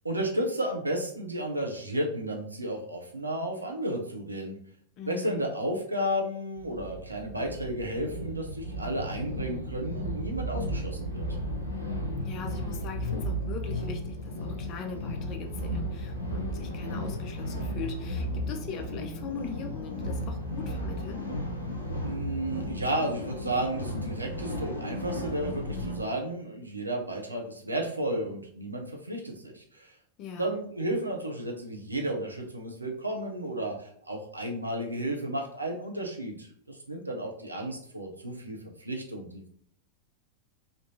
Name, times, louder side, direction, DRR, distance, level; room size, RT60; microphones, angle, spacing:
voice 1, 0.0-4.5 5.1-11.3 22.0-30.0 30.4-39.5, right 1 dB, 80° right, 1 dB, 0.6 m, -33 dB
voice 2, 5.0-5.4 12.2-21.2 30.2-30.6, left 6 dB, 40° left, 4 dB, 0.5 m, -40 dB
sound 1, 6.5-26.0, equal, 80° left, 0.6 m, -34 dB
3.4 x 2.5 x 2.7 m, 0.62 s
figure-of-eight pair, 90°, 0 cm